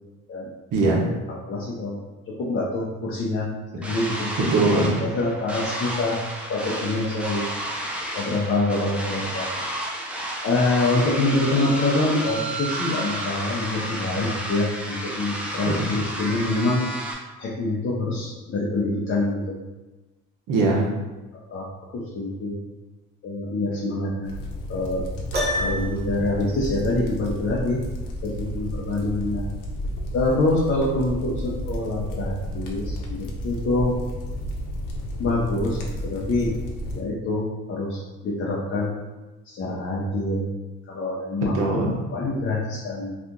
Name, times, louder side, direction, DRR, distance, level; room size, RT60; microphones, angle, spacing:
voice 1, 0.7-1.1 4.4-5.0 15.7-15.9 20.5-20.9 41.5-42.0, right 2 dB, 80° right, -1 dB, 0.8 m, -21 dB
voice 2, 1.5-2.0 2.3-3.5 3.7-4.3 5.0-6.2 6.5-7.6 8.1-9.5 10.4-16.8 17.4-19.6 21.5-21.7 21.9-22.6 23.2-24.3 24.7-25.0 25.5-27.8 28.2-29.5 30.1-34.0 35.2-36.5 37.0-38.9 39.5-40.5 40.9-43.1, left 2 dB, 40° left, -5 dB, 0.6 m, -25 dB
sound 1, 3.8-17.1, right 1 dB, 5° right, 0.4 m, -31 dB
sound 2, 24.2-37.0, equal, 75° left, 0.7 m, -32 dB
Piano, 25.3-26.2, equal, 30° right, 0.8 m, -26 dB
2.8 x 2.4 x 3.6 m, 1.1 s
cardioid pair, 120°, 31 cm